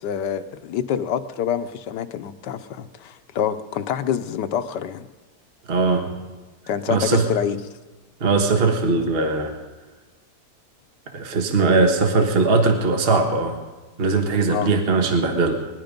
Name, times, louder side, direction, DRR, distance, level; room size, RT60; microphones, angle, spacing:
voice 1, 0.0-5.1 6.7-7.6 14.5-14.7, left 9 dB, 90° left, 11 dB, 1.4 m, -26 dB
voice 2, 5.7-6.1 6.9-7.3 8.2-9.5 11.1-13.6 14.0-15.6, right 3 dB, 35° right, 3 dB, 1.5 m, -20 dB
21.0 x 11.5 x 5.2 m, 1.2 s
omnidirectional pair, 1.8 m